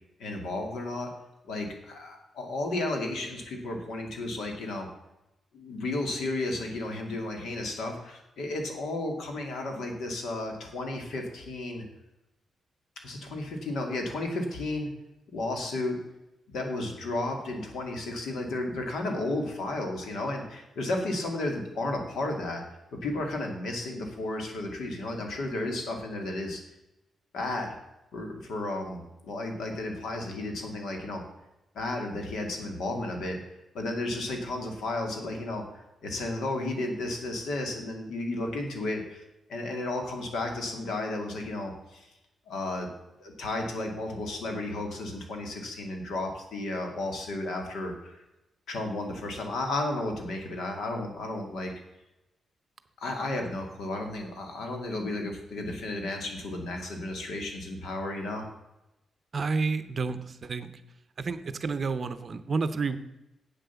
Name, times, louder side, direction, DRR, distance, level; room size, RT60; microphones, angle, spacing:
voice 1, 0.2-1.1 1.5-4.9 5.5-11.9 13.0-14.9 15.3-16.0 16.5-22.6 23.0-26.6 27.3-27.8 28.1-31.2 31.7-33.4 33.7-39.2 39.5-42.1 42.5-42.9 43.2-48.2 48.7-51.7 53.0-58.4, left 2 dB, 75° left, 3 dB, 2.3 m, -33 dB
voice 2, 59.3-60.7 61.2-63.0, right 4 dB, 35° right, 11 dB, 0.6 m, -30 dB
8.2 x 7.6 x 7.0 m, 0.93 s
wide cardioid pair, 165°, 0 cm